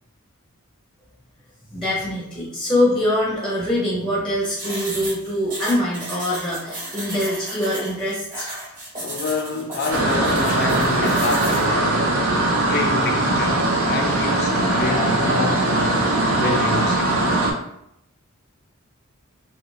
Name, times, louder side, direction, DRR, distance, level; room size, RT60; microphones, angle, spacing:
voice 1, 1.7-8.5, left 1 dB, 5° left, 0.6 m, -23 dB
sound 1, 4.6-11.7, right 1 dB, 40° right, 1.1 m, -33 dB
voice 2, 9.0-12.1 12.7-16.0 16.3-17.4, left 3 dB, 50° left, 0.3 m, -28 dB
sound 2, 9.9-17.5, right 2 dB, 75° right, 0.5 m, -20 dB
2.4 x 2.3 x 3.2 m
head